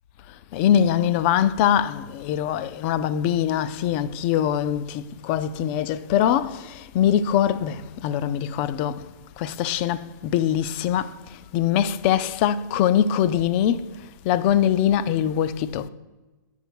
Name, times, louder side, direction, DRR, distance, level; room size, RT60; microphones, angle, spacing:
voice 1, 0.5-13.9 14.2-15.9, left 10 dB, 35° left, 0.4 m, -23 dB
9.3 x 5.4 x 4.6 m
hypercardioid pair, 125°, 10 cm